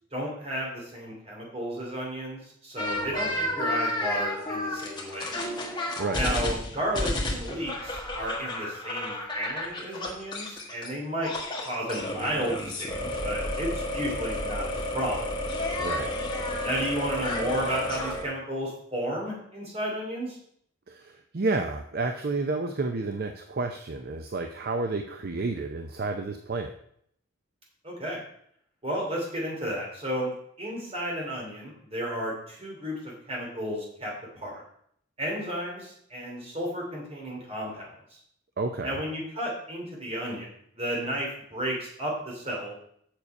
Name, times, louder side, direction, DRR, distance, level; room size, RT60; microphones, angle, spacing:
voice 1, 0.1-5.3 6.1-11.3 11.6-15.3 16.6-20.4 27.8-28.2 28.8-30.3 30.6-34.6 35.2-38.2 38.8-40.5 40.7-42.8, equal, 30° right, -2 dB, 3.0 m, -33 dB
sound 1, 2.8-10.9 11.2-18.2, left 1 dB, 20° left, 1.6 m, -31 dB
voice 2, 15.8-16.2 20.9-26.7 38.6-39.0, right 3 dB, 45° right, 6 dB, 0.6 m, -30 dB
7.4 x 6.6 x 5.4 m, 0.68 s
head